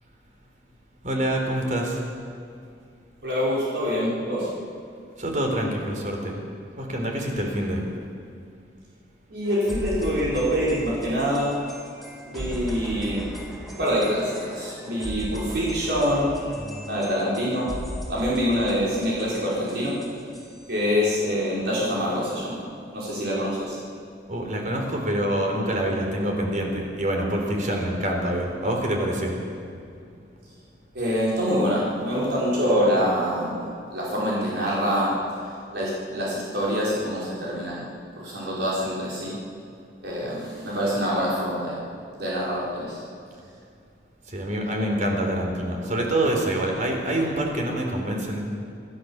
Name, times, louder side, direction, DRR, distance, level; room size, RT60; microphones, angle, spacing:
voice 1, 1.0-2.0 5.2-6.4 6.8-7.8 16.6-16.8 24.3-29.4 29.9-30.2 44.3-48.4, right 1 dB, 45° right, 1 dB, 4.0 m, -26 dB
voice 2, 3.2-4.5 9.3-11.5 12.3-13.3 13.8-16.3 16.9-17.7 18.1-19.9 20.7-22.6 22.9-23.8 30.9-35.1 35.7-37.9 38.2-39.3 40.0-41.7 42.2-43.0, equal, 65° right, -6 dB, 5.0 m, -25 dB
sound 1, 9.4-20.8, equal, ahead, 4.1 m, -37 dB
27.5 x 13.0 x 7.2 m, 2.4 s
head